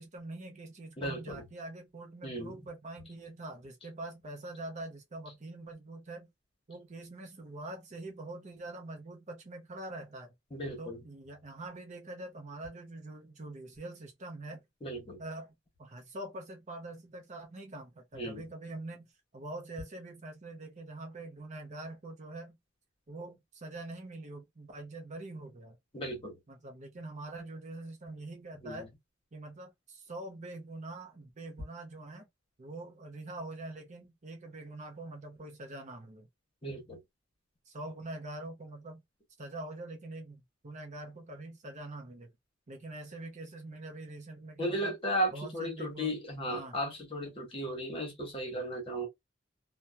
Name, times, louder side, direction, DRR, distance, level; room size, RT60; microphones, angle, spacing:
voice 1, 0.0-6.3 6.7-10.3 10.8-14.6 15.2-15.5 15.8-22.6 23.1-25.8 26.5-28.9 29.3-32.3 32.6-36.3 37.7-39.0 39.4-42.3 42.7-45.0 45.3-46.2 46.5-46.8, right 2 dB, 35° right, 0.6 m, -44 dB
voice 2, 1.0-1.4 2.2-2.6 10.5-11.0 14.8-15.2 18.1-18.4 25.9-26.3 28.6-28.9 36.6-37.0 44.6-49.1, equal, 30° left, 1.2 m, -35 dB
2.8 x 2.2 x 2.2 m
head